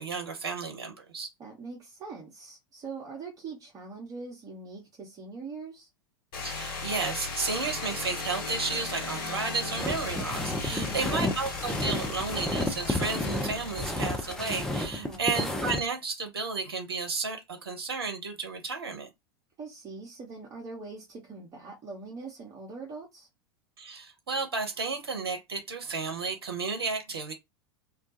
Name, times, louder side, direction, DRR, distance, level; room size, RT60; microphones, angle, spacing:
voice 1, 0.0-1.3 6.4-19.1 23.8-27.3, right 4 dB, 75° right, 0.6 m, -33 dB
voice 2, 1.4-5.9 10.7-11.2 14.9-15.3 19.6-23.3, right 4 dB, 25° right, 0.8 m, -42 dB
sound 1, 6.3-15.1, left 4 dB, 55° left, 1.1 m, -37 dB
sound 2, 9.8-15.8, left 2 dB, 5° left, 0.4 m, -32 dB
2.3 x 2.2 x 2.6 m
figure-of-eight pair, 85°, 13 cm